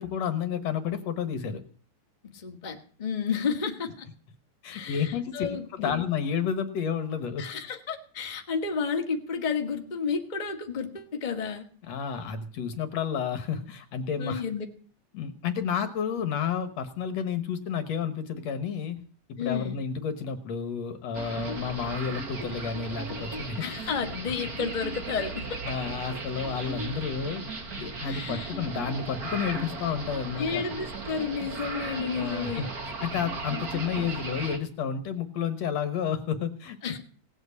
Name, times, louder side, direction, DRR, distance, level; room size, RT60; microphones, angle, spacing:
voice 1, 0.0-1.6 4.6-5.5 5.8-7.5 11.9-14.4 15.1-19.0 19.4-23.6 25.7-27.4 27.8-30.7 32.1-32.7 33.0-36.8, left 7 dB, 65° left, 9 dB, 2.2 m, -31 dB
voice 2, 2.3-4.0 4.7-6.0 7.4-11.7 14.2-14.7 16.1-16.2 19.4-19.8 23.6-25.6 28.0-28.6 30.4-32.7 36.8-37.0, left 6 dB, 20° left, 3 dB, 1.3 m, -32 dB
sound 1, 21.1-34.6, right 3 dB, 35° right, 1.9 m, -36 dB
18.0 x 8.1 x 8.3 m, 0.43 s
omnidirectional pair, 3.5 m